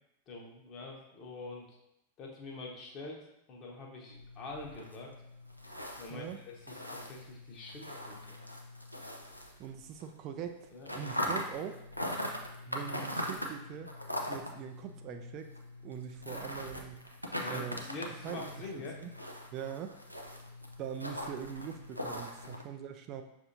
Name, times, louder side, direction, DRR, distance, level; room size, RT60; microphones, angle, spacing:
voice 1, 0.3-1.8 2.2-5.1 6.0-8.4 10.7-11.2 17.3-19.0 22.4-22.6, left 2 dB, 35° left, -1 dB, 1.0 m, -45 dB
sound 1, 4.1-10.1 10.3-22.6, left 1 dB, 90° left, 0.5 m, -41 dB
voice 2, 9.6-11.8 12.7-13.9 14.3-15.5 15.8-17.0 17.5-17.8 18.2-18.5 19.0-19.1 19.5-20.0 20.8-23.2, right 8 dB, 35° right, 6 dB, 0.3 m, -42 dB
6.3 x 2.7 x 2.7 m, 0.85 s
figure-of-eight pair, 90°, 0 cm